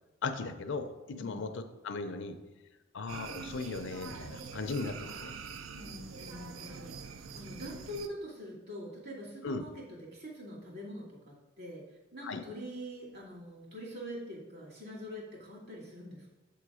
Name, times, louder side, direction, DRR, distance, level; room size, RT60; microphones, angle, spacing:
voice 1, 0.2-0.9 1.2-2.4 2.9-5.3 9.4-9.6 12.2-12.4, left 4 dB, 65° left, 8 dB, 0.6 m, -37 dB
voice 2, 1.1-1.4 5.7-11.8 12.1-16.3, equal, 55° right, -3 dB, 2.3 m, -44 dB
sound 1, 3.1-8.1, right 5 dB, 75° right, 0.5 m, -44 dB
7.5 x 3.8 x 4.8 m, 1.1 s
head